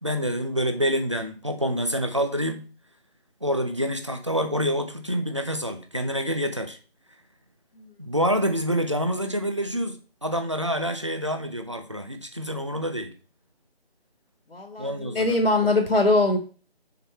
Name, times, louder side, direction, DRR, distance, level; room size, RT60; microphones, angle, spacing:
voice 1, 0.0-2.7 3.4-6.8 8.0-13.1 14.8-15.4, equal, 30° right, 7 dB, 0.6 m, -27 dB
voice 2, 14.5-16.4, left 2 dB, 75° left, 3 dB, 2.0 m, -22 dB
6.7 x 4.6 x 4.3 m, 0.36 s
figure-of-eight pair, 175°, 31 cm